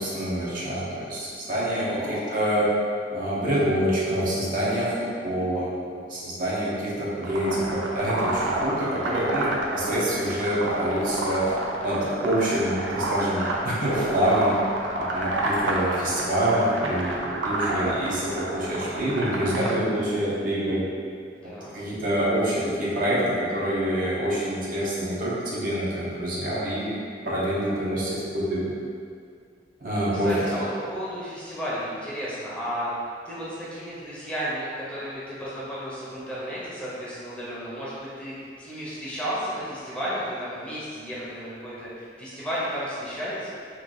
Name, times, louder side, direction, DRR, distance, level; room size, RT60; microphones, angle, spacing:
voice 1, 0.0-2.7 3.1-5.7 6.1-11.5 11.8-14.6 15.0-20.8 21.7-27.0 27.2-28.7 29.8-30.3, right 1 dB, 50° right, -7 dB, 0.8 m, -26 dB
voice 2, 1.8-2.3 21.3-21.8 30.1-43.5, equal, 5° left, -9 dB, 0.7 m, -33 dB
sound 1, 7.2-19.7, right 2 dB, 85° right, 0.5 m, -29 dB
3.1 x 2.4 x 3.8 m, 2.2 s
head